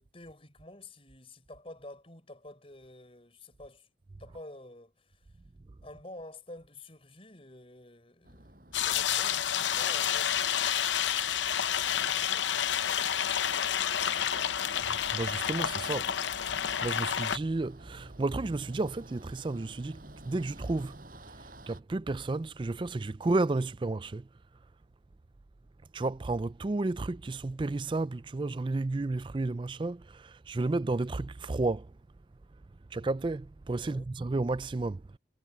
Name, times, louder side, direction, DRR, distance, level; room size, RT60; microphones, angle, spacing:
voice 1, 0.0-3.9 4.2-5.3 5.8-11.1 11.9-12.5 12.8-14.7 33.8-34.1, left 1 dB, 30° left, 5.6 m, -50 dB
sound 1, 8.3-21.8, right 1 dB, 50° right, 5.9 m, -52 dB
sound 2, 8.7-17.4, left 9 dB, 80° left, 0.7 m, -29 dB
voice 2, 15.1-16.0 16.8-21.1 21.7-24.3 25.9-31.9 32.9-35.0, right 2 dB, 25° right, 0.4 m, -32 dB
head